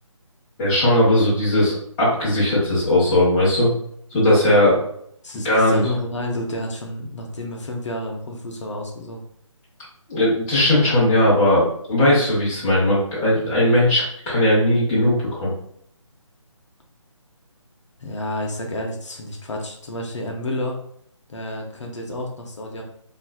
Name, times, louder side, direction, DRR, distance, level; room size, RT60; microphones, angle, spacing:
voice 1, 0.6-3.7 4.1-4.8 5.4-5.8 10.1-15.5, left 1 dB, 15° left, -9 dB, 0.8 m, -18 dB
voice 2, 5.2-9.2 18.0-20.8 21.3-22.8, left 1 dB, 65° left, 0 dB, 0.6 m, -30 dB
3.0 x 2.4 x 2.2 m, 0.68 s
figure-of-eight pair, 150°, 17 cm